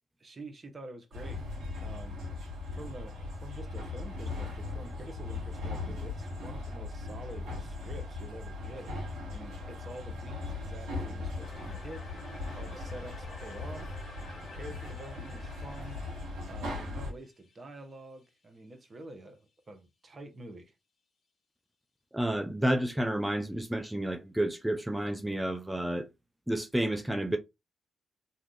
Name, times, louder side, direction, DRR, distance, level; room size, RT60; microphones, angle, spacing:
voice 1, 0.2-1.4 1.8-2.2 2.7-8.9 9.3-12.1 12.5-14.0 14.5-16.0 16.5-20.7, right 1 dB, 40° right, 1.0 m, -47 dB
sound 1, 1.1-17.1, left 3 dB, 75° right, 1.4 m, -39 dB
sound 2, 11.4-18.3, left 4 dB, 55° left, 1.0 m, -52 dB
voice 2, 22.1-26.1 26.5-27.4, right 1 dB, 10° right, 0.5 m, -30 dB
2.7 x 2.4 x 3.7 m
supercardioid pair, 50°, 0 cm